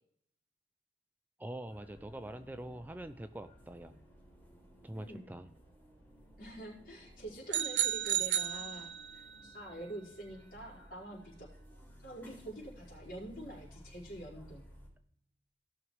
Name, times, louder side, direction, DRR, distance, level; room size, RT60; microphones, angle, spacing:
voice 1, 1.4-4.0 4.8-5.5, right 1 dB, 10° right, 9 dB, 0.4 m, -44 dB
sound 1, 1.6-14.9, equal, 10° left, 3.6 m, -57 dB
voice 2, 5.0-5.3 6.4-11.5 12.0-14.6, right 1 dB, 55° left, -6 dB, 4.5 m, -46 dB
sound 2, 7.5-9.3, right 11 dB, 70° right, 0.5 m, -33 dB
17.5 x 6.1 x 3.1 m, 0.70 s
head